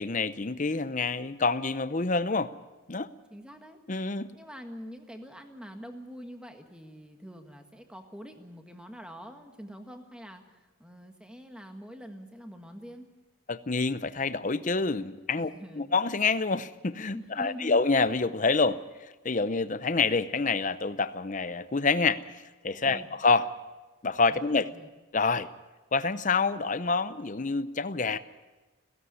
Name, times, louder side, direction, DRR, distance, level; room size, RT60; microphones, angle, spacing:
voice 1, 0.0-2.5 2.9-3.1 3.9-4.3 13.5-18.8 19.2-22.2 22.6-23.5 24.0-24.7 25.1-25.5 25.9-28.2, left 4 dB, 35° left, 13 dB, 0.7 m, -27 dB
voice 2, 3.3-3.8 4.3-13.1 15.5-15.9 17.1-17.8 22.8-23.1 24.3-24.9, equal, 5° right, 5 dB, 1.6 m, -45 dB
16.5 x 16.5 x 9.6 m, 1.2 s
head